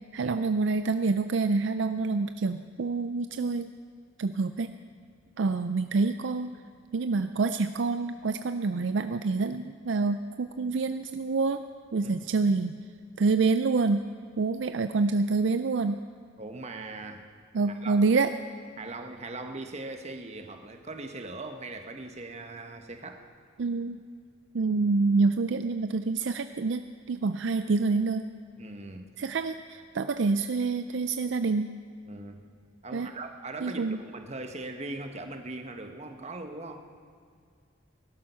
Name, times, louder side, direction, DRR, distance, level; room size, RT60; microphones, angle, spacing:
voice 1, 0.1-3.7 4.2-4.7 5.4-6.6 6.9-11.7 11.9-12.8 13.2-14.0 14.4-16.0 17.5-18.3 23.6-24.0 24.5-28.3 29.2-31.7 32.9-33.1 33.6-34.0, right 4 dB, 60° right, 10 dB, 0.4 m, -27 dB
voice 2, 16.4-17.3 17.7-18.2 18.8-23.3 28.6-29.1 32.1-32.5 32.8-36.9, right 2 dB, 35° right, 5 dB, 1.1 m, -40 dB
18.0 x 12.0 x 5.6 m, 2.2 s
head